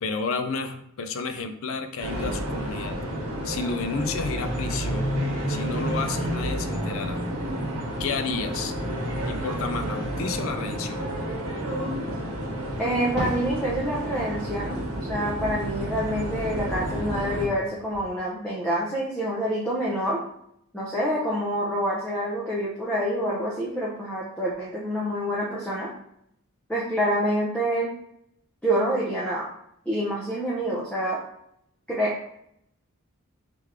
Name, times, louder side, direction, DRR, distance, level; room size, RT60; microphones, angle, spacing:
voice 1, 0.0-3.0 3.4-5.1 5.5-7.2 8.0-8.7 9.3-11.1, left 4 dB, 65° left, 8 dB, 0.4 m, -31 dB
sound 1, 2.0-17.5, equal, 70° right, 1.1 m, -30 dB
voice 2, 12.8-20.2 20.7-25.9 26.7-27.9 28.6-29.5 29.9-31.2 31.9-32.2, equal, 5° left, -6 dB, 0.5 m, -27 dB
Fireworks, 13.2-15.8 16.1-18.0, right 1 dB, 85° left, 1.6 m, -40 dB
3.4 x 3.2 x 3.5 m, 0.74 s
head